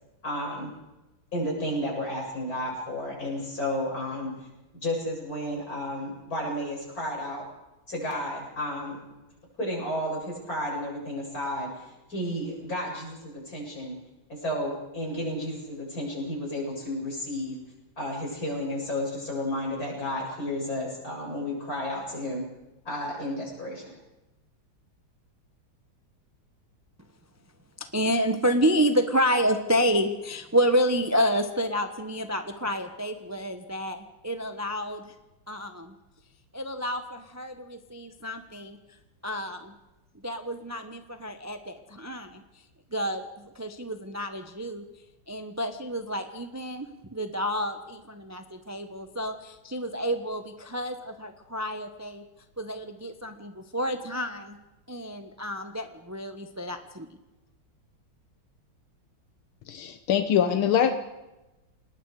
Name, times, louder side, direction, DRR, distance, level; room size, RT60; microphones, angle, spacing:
voice 1, 0.2-0.7 1.3-4.3 4.7-7.4 7.9-9.0 9.6-11.8 12.1-13.9 14.3-17.6 18.0-22.5 22.8-23.9, left 1 dB, 45° left, -3 dB, 8.1 m, -32 dB
voice 2, 27.9-35.1 35.5-35.9 36.5-38.8 39.2-39.7 40.2-42.4 42.9-43.3 43.6-44.8 45.3-52.2 52.6-54.6 54.9-57.1, equal, 15° right, 7 dB, 0.7 m, -29 dB
voice 3, 59.7-60.9, left 8 dB, 85° left, 9 dB, 1.8 m, -23 dB
29.5 x 19.5 x 4.9 m, 1.0 s
omnidirectional pair, 2.2 m